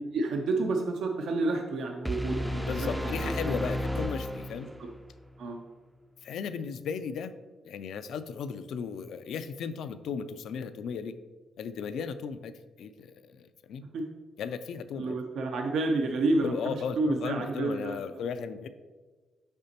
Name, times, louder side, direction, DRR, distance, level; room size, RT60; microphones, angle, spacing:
voice 1, 0.1-3.3 4.8-4.9 5.4-5.6 13.9-14.1 14.9-18.2, right 2 dB, 75° right, 3 dB, 0.5 m, -30 dB
sound 1, 2.0-5.0, left 1 dB, 5° right, 0.3 m, -32 dB
voice 2, 2.7-4.7 6.2-7.3 7.6-11.2 11.6-13.8 14.4-15.2 16.0-16.1 16.4-18.7, left 6 dB, 75° left, 12 dB, 0.3 m, -36 dB
6.7 x 5.0 x 2.8 m, 1.4 s
cardioid pair, 90°, 0 cm